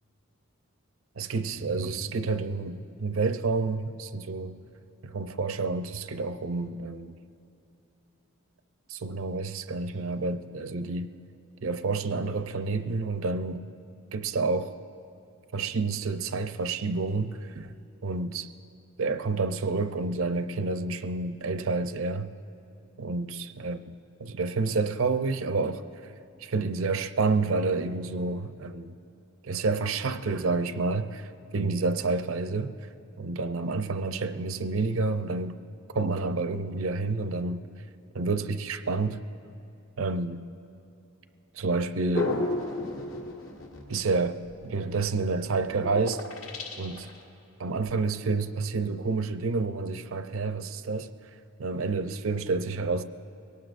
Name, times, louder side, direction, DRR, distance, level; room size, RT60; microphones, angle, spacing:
voice 1, 1.2-4.6 5.0-7.1 8.9-11.1 11.6-13.6 14.1-14.7 15.5-17.7 18.0-18.5 19.0-22.3 23.0-23.8 24.2-25.8 26.4-29.0 29.4-32.7 33.2-35.6 35.9-37.6 38.1-39.2 40.0-40.4 41.5-42.4 43.9-46.2 46.8-47.1 47.6-51.1 51.6-53.0, right 3 dB, 70° right, 0.6 m, -29 dB
sound 1, 42.1-44.1 44.7-45.0 45.4-47.2, left 2 dB, 80° left, 1.9 m, -32 dB
23.0 x 18.0 x 2.5 m
head